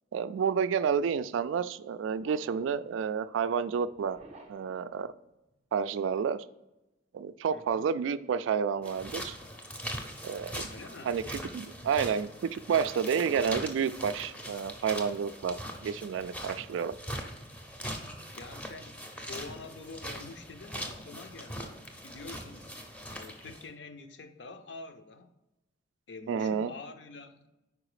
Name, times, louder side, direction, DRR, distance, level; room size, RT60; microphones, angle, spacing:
voice 1, 0.1-4.2 4.5-5.1 5.7-6.4 7.1-9.4 10.2-10.7 11.0-16.9 26.3-26.7, right 6 dB, 75° right, 14 dB, 0.3 m, -30 dB
sound 1, 2.2-5.6 8.6-10.0 13.0-14.3, right 2 dB, 35° right, 0.6 m, -56 dB
voice 2, 7.5-7.9 10.7-11.3 18.2-22.7 23.1-25.3 26.1-27.5, left 3 dB, 65° left, 9 dB, 0.6 m, -47 dB
sound 2, 8.8-23.7, equal, 5° left, 0.6 m, -41 dB
4.9 x 4.7 x 4.8 m, 0.97 s
head